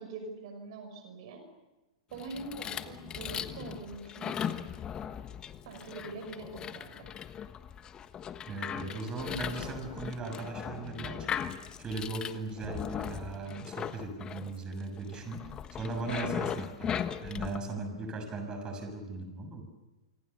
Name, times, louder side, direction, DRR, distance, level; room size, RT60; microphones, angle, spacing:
voice 1, 0.0-1.4 2.1-4.6 5.7-7.1 16.0-16.3, right 3 dB, 60° right, 6 dB, 5.8 m, -43 dB
sound 1, 2.1-17.6, left 8 dB, 25° left, 1.4 m, -38 dB
voice 2, 8.5-11.3 11.8-15.4 15.7-19.7, right 3 dB, 25° right, 5 dB, 6.7 m, -38 dB
27.0 x 25.0 x 6.9 m, 1.1 s
hypercardioid pair, 110°, 3 cm